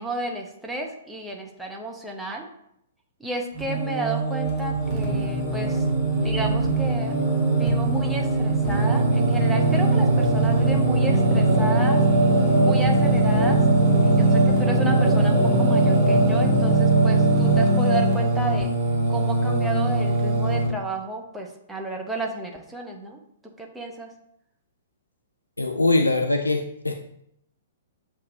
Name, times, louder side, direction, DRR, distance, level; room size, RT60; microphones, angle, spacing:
voice 1, 0.0-2.5 3.2-5.9 6.2-7.1 7.6-12.0 12.6-13.6 14.0-18.7 19.1-23.2 23.6-24.1, right 2 dB, 5° right, 1 dB, 0.6 m, -32 dB
Singing, 3.5-20.7, right 2 dB, 25° right, 1.3 m, -20 dB
voice 2, 25.6-26.9, left 2 dB, 80° left, 5 dB, 0.3 m, -22 dB
7.4 x 2.6 x 2.6 m, 0.75 s
figure-of-eight pair, 110°, 0 cm